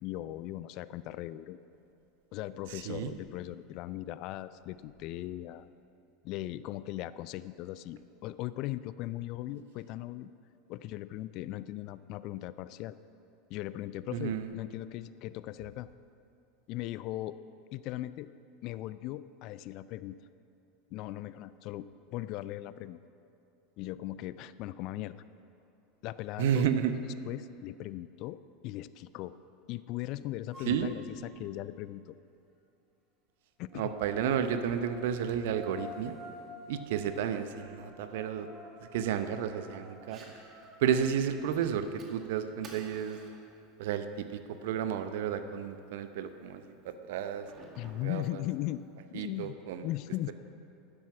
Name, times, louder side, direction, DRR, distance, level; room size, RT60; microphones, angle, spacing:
voice 1, 0.0-1.6 2.3-5.7 6.2-10.3 10.7-13.0 13.5-15.9 16.7-17.4 17.7-18.3 18.6-20.2 20.9-23.0 23.8-25.1 26.0-29.3 29.7-32.2 33.6-33.9 47.8-48.8 49.1-50.3, left 15 dB, 50° left, 15 dB, 0.4 m, -39 dB
voice 2, 2.7-3.2 14.1-14.5 26.4-26.9 30.7-30.9 33.7-36.2 36.7-38.5 38.9-40.2 40.8-43.2 43.8-47.5 47.8-48.4 49.1-49.8, right 8 dB, 65° right, 10 dB, 0.7 m, -32 dB
sound 1, 30.5-30.8 33.7-41.1, left 2 dB, 20° right, 2.8 m, -50 dB
Fire, 40.0-49.0, right 3 dB, 35° right, 2.1 m, -57 dB
11.5 x 9.9 x 6.0 m, 2.7 s
figure-of-eight pair, 80°, 0 cm